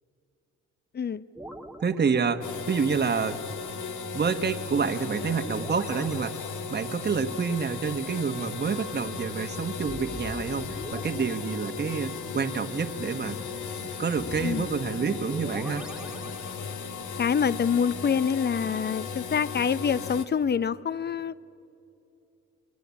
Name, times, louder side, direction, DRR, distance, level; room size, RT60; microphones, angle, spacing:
voice 1, 0.9-1.3 14.4-14.6 17.2-21.3, left 7 dB, 30° left, 17 dB, 0.7 m, -26 dB
sound 1, 1.4-2.9 5.1-7.2 9.9-12.4 14.2-17.2, right 1 dB, ahead, 1.7 m, -44 dB
voice 2, 1.8-3.4 4.1-6.4 6.7-13.4 14.0-15.9, right 5 dB, 35° right, 7 dB, 1.5 m, -28 dB
sound 2, 2.4-20.2, left 5 dB, 70° left, 2.0 m, -36 dB
28.5 x 22.5 x 8.5 m, 2.7 s
cardioid pair, 80°, 31 cm